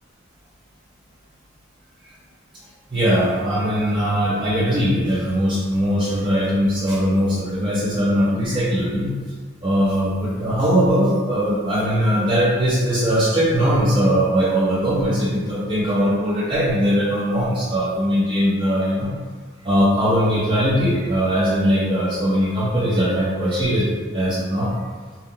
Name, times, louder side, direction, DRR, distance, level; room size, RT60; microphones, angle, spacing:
voice 1, 2.9-9.1 9.6-19.1 19.6-23.8 24.1-24.7, equal, 25° right, -8 dB, 0.6 m, -20 dB
5.5 x 2.1 x 2.8 m, 1.5 s
head